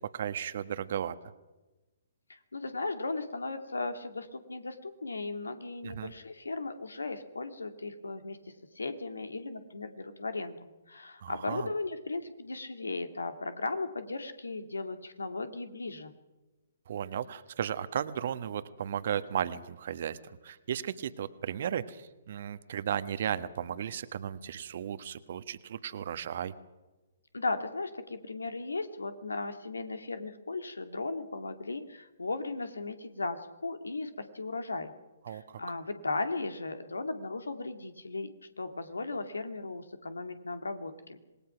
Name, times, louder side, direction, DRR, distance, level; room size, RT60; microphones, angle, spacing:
voice 1, 0.1-1.1 5.8-6.1 11.2-11.7 16.9-26.5 35.2-35.6, right 9 dB, 55° right, 12 dB, 1.4 m, -35 dB
voice 2, 2.3-8.4 8.7-16.1 27.3-34.9 35.3-38.3 38.6-41.2, left 3 dB, 80° left, 8 dB, 2.4 m, -36 dB
26.5 x 20.0 x 6.0 m, 1.1 s
figure-of-eight pair, 130°, 0 cm